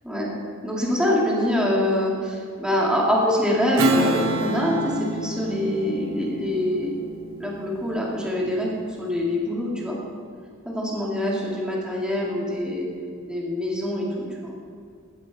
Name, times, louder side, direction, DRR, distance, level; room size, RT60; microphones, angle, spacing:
voice 1, 0.6-6.9 7.4-8.7 9.0-10.0 10.7-12.9 13.3-14.5, left 1 dB, 5° right, -4 dB, 2.1 m, -24 dB
Strum, 3.8-8.7, right 1 dB, 65° right, 1.0 m, -28 dB
16.0 x 7.4 x 4.1 m, 2.3 s
head